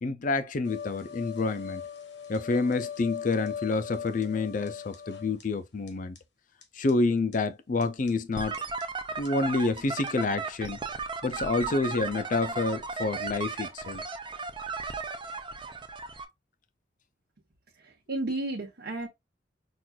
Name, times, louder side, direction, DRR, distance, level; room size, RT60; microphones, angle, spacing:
voice 1, 0.0-1.8 2.3-6.2 6.7-8.5 9.2-10.8 11.2-14.0, left 3 dB, 45° left, 0.5 m, -28 dB
sound 1, 0.6-5.4 5.9-6.0 6.2-6.3 6.6-6.7 6.9-7.0 7.3-7.4 7.8-8.1 8.5-8.8 9.2-9.3 9.8-9.9 10.1-10.2, left 7 dB, 80° left, 1.2 m, -40 dB
sound 2, 8.4-16.3, right 4 dB, 25° right, 0.5 m, -35 dB
voice 2, 17.7-19.1, right 2 dB, 60° right, 0.9 m, -33 dB
5.9 x 2.5 x 2.3 m
head